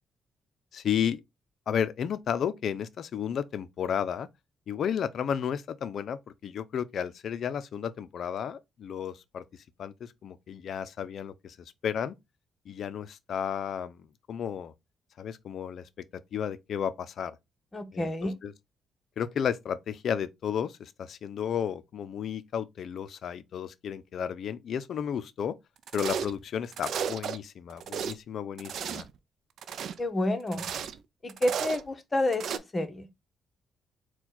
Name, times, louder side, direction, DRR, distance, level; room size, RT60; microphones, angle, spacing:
voice 1, 0.7-1.2 1.7-4.3 4.7-9.4 9.8-12.1 12.7-14.7 15.2-16.0 16.3-17.4 17.9-18.5 19.2-25.5 25.9-29.0, left 8 dB, 60° left, 0.4 m, -33 dB
voice 2, 17.7-18.3 30.0-30.6 31.2-33.1, left 1 dB, 30° left, 0.9 m, -29 dB
sound 1, 25.9-26.4 26.7-27.4 27.7-28.1 28.6-29.1 29.6-30.0 30.5-31.0 31.3-31.8 32.3-32.6, right 8 dB, 65° right, 0.4 m, -34 dB
4.4 x 2.2 x 4.0 m
cardioid pair, 90°, 0 cm